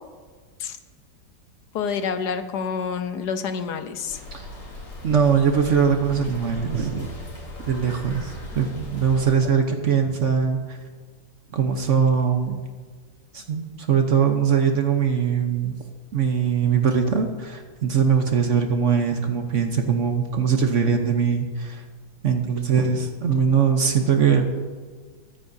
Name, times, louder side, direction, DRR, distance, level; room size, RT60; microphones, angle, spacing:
voice 1, 1.7-4.2, left 6 dB, 75° left, 8 dB, 1.3 m, -28 dB
sound 1, 4.1-9.3, left 1 dB, 90° left, 3.7 m, -38 dB
voice 2, 5.0-7.1 7.7-10.8 11.5-12.6 13.3-15.8 16.1-21.8 22.2-24.5, right 6 dB, 50° right, 5 dB, 1.1 m, -21 dB
22.5 x 9.6 x 2.7 m, 1.5 s
omnidirectional pair, 1.9 m